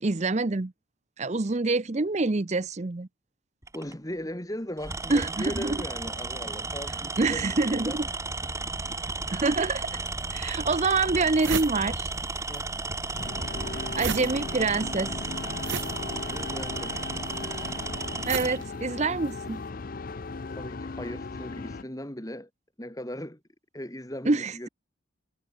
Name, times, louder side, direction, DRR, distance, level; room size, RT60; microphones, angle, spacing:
voice 1, 0.0-0.7 1.2-3.1 5.1-5.8 7.2-8.0 9.3-10.0 10.3-12.1 14.0-15.1 18.3-19.6 24.3-24.7, right 3 dB, 35° right, 0.6 m, -26 dB
Tools, 3.6-3.9 4.8-18.6, right 3 dB, 15° right, 1.5 m, -34 dB
voice 2, 3.7-8.1 8.8-9.1 12.5-12.7 16.2-17.0 20.5-22.5 22.8-23.4 23.7-24.7, equal, 15° left, 2.6 m, -38 dB
sound 1, 10.1-10.2 10.8-10.9 11.1-12.6 12.9-19.5, right 6 dB, 70° right, 1.3 m, -36 dB
sound 2, 13.1-21.8, left 3 dB, 45° left, 0.5 m, -37 dB
head